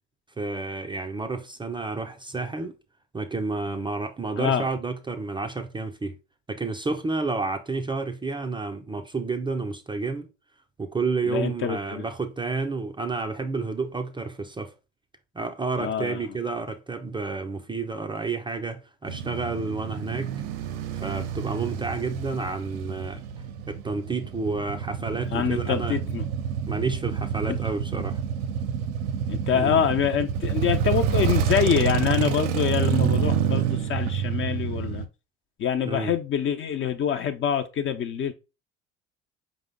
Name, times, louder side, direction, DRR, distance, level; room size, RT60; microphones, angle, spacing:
voice 1, 0.4-2.7 3.1-6.2 6.5-10.3 10.8-14.7 15.3-20.3 21.0-23.2 23.7-26.0 26.7-28.2 29.5-29.8 35.9-36.1, right 3 dB, 15° right, 0.4 m, -30 dB
voice 2, 11.2-12.0 15.8-16.2 25.3-26.3 27.5-27.6 29.3-35.0 35.6-38.3, left 8 dB, 40° left, 0.5 m, -25 dB
Male speech man speaking / Motorcycle / Idling, 19.1-35.1, right 7 dB, 75° right, 0.5 m, -28 dB
4.9 x 2.0 x 3.5 m
hypercardioid pair, 65°, 32 cm